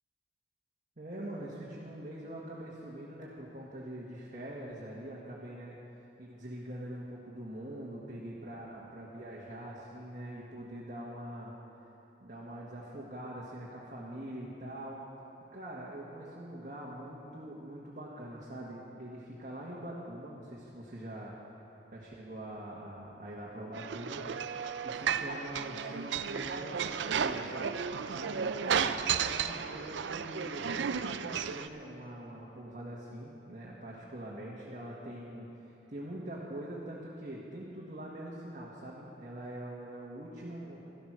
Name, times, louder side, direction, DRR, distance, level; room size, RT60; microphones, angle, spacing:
voice 1, 1.0-5.8 6.2-11.5 12.2-15.0 15.5-21.3 21.9-24.2 24.8-27.5 28.1-35.5 35.9-40.8, right 1 dB, 45° right, -5 dB, 1.5 m, -43 dB
sound 1, 23.7-31.7, right 7 dB, 75° right, 0.4 m, -33 dB
13.0 x 12.5 x 6.1 m, 2.9 s
head